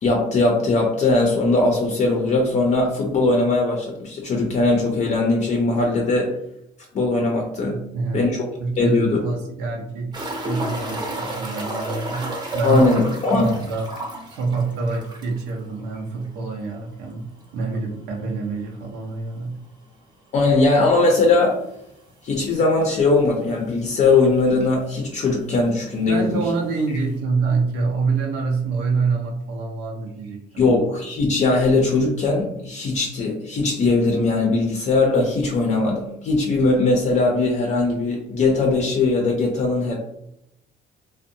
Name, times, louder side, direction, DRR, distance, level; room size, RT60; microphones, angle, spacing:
voice 1, 0.0-6.4 6.9-7.9 8.1-8.5 8.8-9.2 12.6-13.6 20.3-21.6 22.2-26.4 30.6-40.0, left 3 dB, 40° left, 0 dB, 0.5 m, -20 dB
voice 2, 7.7-8.2 8.6-12.9 13.4-13.9 14.3-19.6 26.0-30.7, right 4 dB, 85° right, 0 dB, 0.6 m, -26 dB
sound 1, 10.1-15.5 15.8-15.9 16.2-16.3 19.1-19.2 20.9-21.0 21.8-21.9 22.1-22.2 23.1-23.2 23.4-24.0 24.9-25.0, right 1 dB, 25° right, 0.6 m, -31 dB
2.6 x 2.1 x 2.6 m, 0.80 s
cardioid pair, 110°, 17 cm